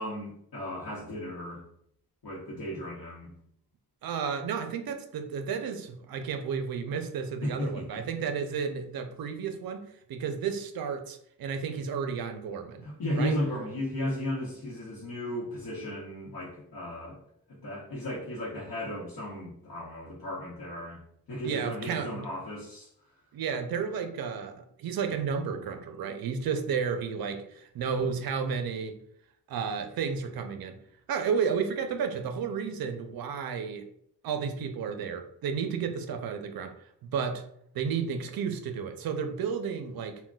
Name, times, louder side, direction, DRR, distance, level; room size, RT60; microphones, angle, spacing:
voice 1, 0.0-1.6 2.2-3.3 7.4-8.0 12.8-17.2 17.5-21.0 21.3-22.9, equal, 60° left, -7 dB, 0.9 m, -35 dB
voice 2, 4.0-12.9 13.2-13.4 21.4-22.3 23.3-28.9 29.5-30.8 31.1-33.9 34.2-36.7 37.0-37.4 37.7-40.2, right 6 dB, 65° right, 7 dB, 0.5 m, -32 dB
3.7 x 2.2 x 2.3 m, 0.69 s
cardioid pair, 80°, 39 cm